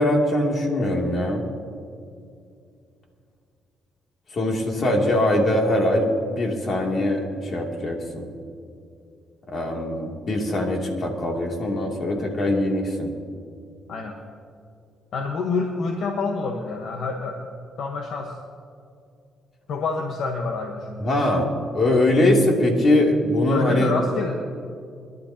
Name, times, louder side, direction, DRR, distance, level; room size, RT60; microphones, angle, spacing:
voice 1, 0.0-1.4 4.3-6.1 6.4-8.3 9.5-13.1 21.0-23.9, left 1 dB, 50° left, 0 dB, 2.7 m, -22 dB
voice 2, 15.1-18.3 19.7-21.1 23.5-24.4, left 4 dB, 70° left, 2 dB, 1.2 m, -27 dB
23.5 x 12.0 x 2.9 m, 2.4 s
cardioid pair, 90°, 0 cm